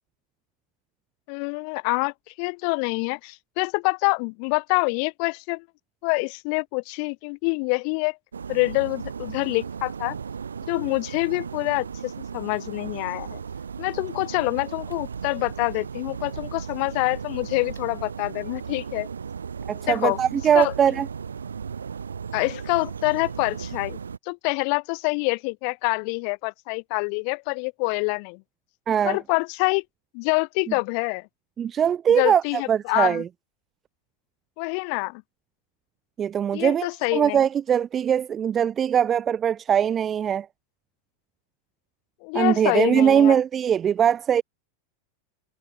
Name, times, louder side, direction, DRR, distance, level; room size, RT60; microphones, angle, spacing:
voice 1, 1.3-5.6 6.0-8.2 8.5-10.2 10.7-13.4 13.8-19.1 19.9-20.2 20.5-20.7 22.3-24.0 24.3-28.4 29.0-29.8 30.1-31.3 32.1-33.2 34.6-35.2 36.5-37.4 42.2-43.4, left 40 dB or more, 45° left, 4.0 m, -26 dB
sound 1, 8.3-24.2, right 6 dB, 70° right, 6.5 m, -36 dB
voice 2, 19.7-21.1 28.9-29.2 31.6-32.4 32.7-33.3 36.2-40.5 42.3-44.4, right 8 dB, 25° right, 1.0 m, -21 dB
figure-of-eight pair, 90°, 0 cm